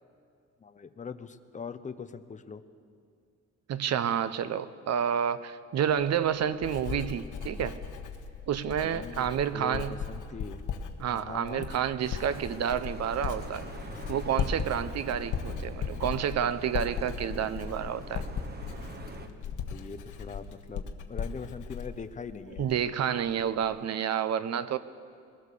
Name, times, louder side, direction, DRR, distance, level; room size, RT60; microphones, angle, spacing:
voice 1, 0.6-2.6 8.8-10.6 11.1-11.7 19.2-22.7, left 5 dB, 25° left, 9 dB, 0.8 m, -42 dB
voice 2, 3.7-7.8 8.5-10.0 11.0-13.7 14.1-18.2 22.6-24.8, right 9 dB, 60° right, 13 dB, 0.8 m, -29 dB
Writing, 5.9-22.9 23.2-23.7, left 6 dB, 80° left, 1.5 m, -37 dB
sound 1, 12.0-19.3, right 3 dB, 30° right, 1.4 m, -45 dB
21.5 x 20.5 x 6.8 m, 2.2 s
wide cardioid pair, 165°, 30 cm